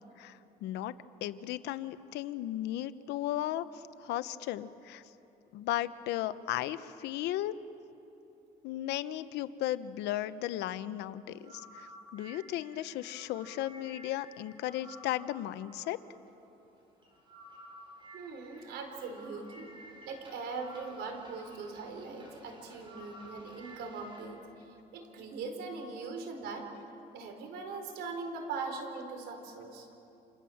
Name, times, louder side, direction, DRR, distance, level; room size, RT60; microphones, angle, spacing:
voice 1, 0.2-0.9 1.2-3.7 4.0-5.0 5.5-7.6 8.6-16.0, left 13 dB, 85° left, 13 dB, 1.0 m, -35 dB
sound 1, 11.3-24.3, right 1 dB, 30° right, 6.4 m, -53 dB
voice 2, 18.1-19.7 20.0-24.4 24.9-26.7 27.1-29.9, right 4 dB, 80° right, 5 dB, 4.4 m, -41 dB
29.0 x 28.0 x 7.2 m, 2.8 s
cardioid pair, 110°, 17 cm